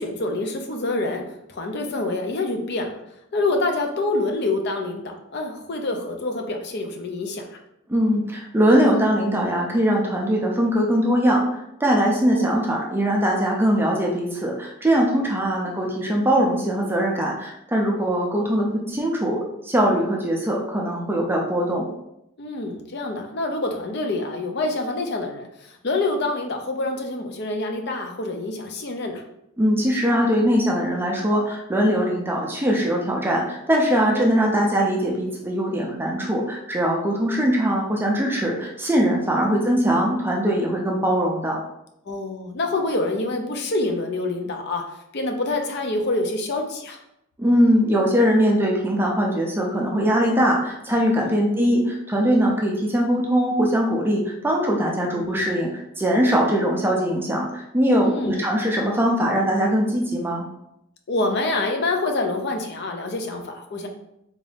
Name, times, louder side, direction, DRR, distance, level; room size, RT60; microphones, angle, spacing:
voice 1, 0.0-2.9 3.3-7.5 12.3-12.6 15.1-15.2 22.4-29.2 34.0-34.3 39.3-39.6 42.1-44.8 45.1-47.0 51.2-51.4 55.2-55.5 58.0-58.4 61.1-63.9, left 2 dB, 50° left, 4 dB, 0.5 m, -26 dB
voice 2, 7.9-11.5 11.8-21.8 29.6-41.6 47.4-60.4, equal, 10° right, -1 dB, 0.4 m, -21 dB
3.6 x 2.6 x 3.4 m, 0.80 s
head